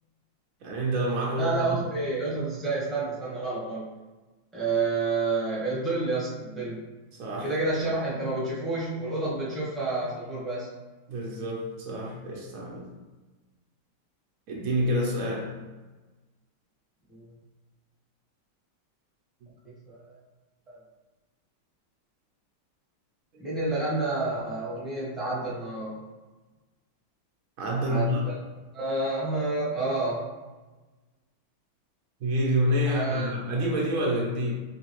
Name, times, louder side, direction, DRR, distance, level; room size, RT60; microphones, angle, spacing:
voice 1, 0.6-1.8 7.1-7.5 11.1-12.9 14.5-15.5 27.6-28.2 32.2-34.5, equal, 80° right, -2 dB, 0.7 m, -27 dB
voice 2, 1.4-3.9 4.5-6.8 7.4-10.7 17.1-17.2 19.9-20.2 20.7-20.8 23.4-26.0 27.8-28.4 28.7-30.2 32.8-33.3, right 3 dB, ahead, -7 dB, 0.4 m, -29 dB
3.9 x 3.1 x 3.0 m, 1.2 s
omnidirectional pair, 2.3 m